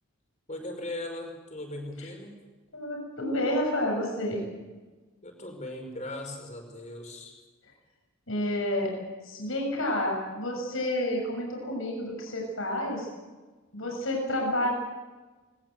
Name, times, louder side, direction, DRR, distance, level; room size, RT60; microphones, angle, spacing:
voice 1, 0.5-2.3 5.2-7.4, left 1 dB, 35° left, 4 dB, 5.4 m, -38 dB
voice 2, 2.7-4.4 8.3-8.9 9.2-13.1 13.7-14.7, left 1 dB, 65° left, 1 dB, 7.1 m, -29 dB
21.0 x 20.0 x 8.0 m, 1.3 s
head